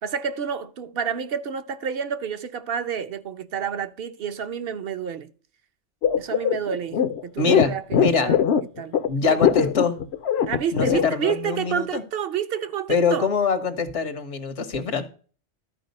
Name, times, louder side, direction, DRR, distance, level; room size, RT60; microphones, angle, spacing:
voice 1, 0.0-5.3 6.2-8.4 8.8-9.0 9.3-9.4 10.5-13.3, right 7 dB, 60° right, 1.0 m, -29 dB
sound 1, 6.0-11.3, left 9 dB, 65° left, 0.9 m, -21 dB
voice 2, 7.4-8.3 9.1-10.0 10.7-12.0 12.9-15.1, left 4 dB, 80° left, 1.6 m, -24 dB
12.5 x 4.9 x 5.3 m
omnidirectional pair, 1.2 m